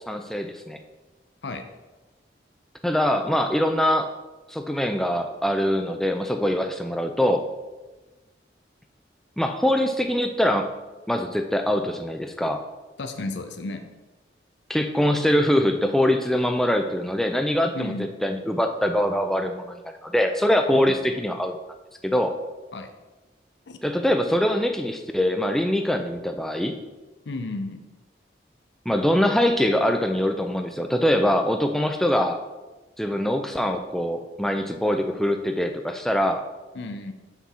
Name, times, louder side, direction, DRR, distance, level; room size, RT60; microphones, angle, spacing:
voice 1, 0.1-0.8 2.8-4.1 4.5-7.4 9.4-10.7 11.1-12.6 14.7-17.9 18.2-19.8 20.0-21.6 22.0-22.3 23.8-26.7 28.9-32.4 33.0-36.4, equal, ahead, 5 dB, 0.4 m, -23 dB
voice 2, 13.0-13.9 17.7-18.1 20.7-21.2 22.7-22.9 23.7-23.8 27.3-27.8 36.7-37.1, left 2 dB, 80° left, 7 dB, 0.6 m, -33 dB
7.1 x 6.0 x 4.2 m, 1.2 s
head